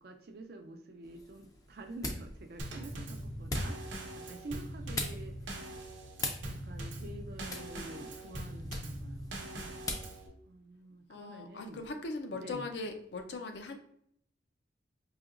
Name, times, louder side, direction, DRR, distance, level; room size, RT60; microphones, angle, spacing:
voice 1, 0.0-5.7 6.5-10.0 10.5-11.8 12.3-12.7, right 2 dB, 55° right, 5 dB, 0.5 m, -48 dB
sound 1, 1.0-10.2, left 2 dB, 20° left, 0.4 m, -42 dB
Drum kit / Snare drum / Bass drum, 2.6-10.3, right 1 dB, 85° right, 0.8 m, -42 dB
voice 2, 11.1-13.8, left 3 dB, 70° left, 5 dB, 0.5 m, -40 dB
4.9 x 2.8 x 2.5 m, 0.68 s
head